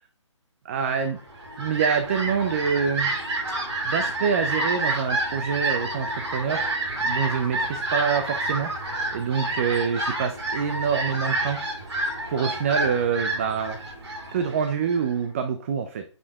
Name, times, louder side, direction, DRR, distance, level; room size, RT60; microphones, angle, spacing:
voice 1, 0.6-1.2 1.6-3.1 3.8-6.6 7.0-8.7 9.1-11.6 12.3-13.8 14.3-16.0, right 6 dB, 25° right, 7 dB, 0.4 m, -26 dB
Fowl, 1.2-15.1, right 2 dB, 60° right, 3.5 m, -29 dB
7.1 x 6.6 x 2.3 m, 0.41 s
figure-of-eight pair, 150°, 16 cm